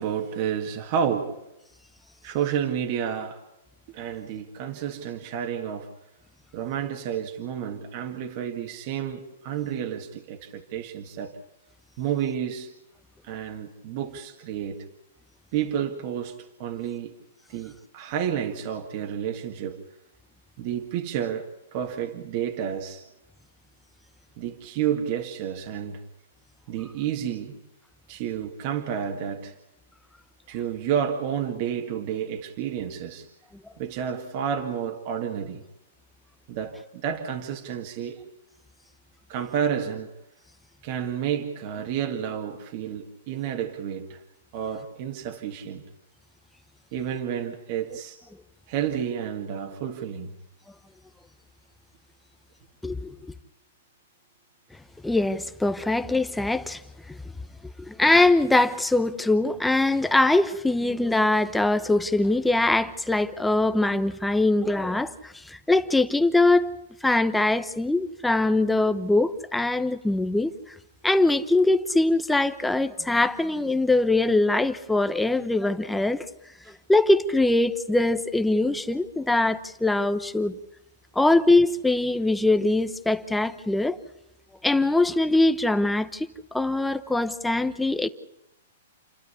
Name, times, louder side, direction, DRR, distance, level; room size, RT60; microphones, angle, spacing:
voice 1, 0.0-1.4 2.2-3.4 3.9-5.9 6.5-11.3 12.0-12.7 13.2-14.8 15.5-17.2 17.5-19.8 20.6-23.0 24.4-26.0 26.7-27.6 28.1-29.5 30.5-33.3 33.8-35.6 36.5-38.2 39.3-40.1 40.8-44.2 44.5-45.8 46.9-48.2 48.7-50.3, right 9 dB, 40° right, 2.0 m, -30 dB
voice 2, 52.8-53.3 55.0-56.8 57.1-57.2 57.8-70.5 71.0-76.3 76.7-80.5 81.1-84.0 84.6-88.1, left 2 dB, 5° left, 1.0 m, -22 dB
29.5 x 12.0 x 8.5 m
hypercardioid pair, 150°, 0 cm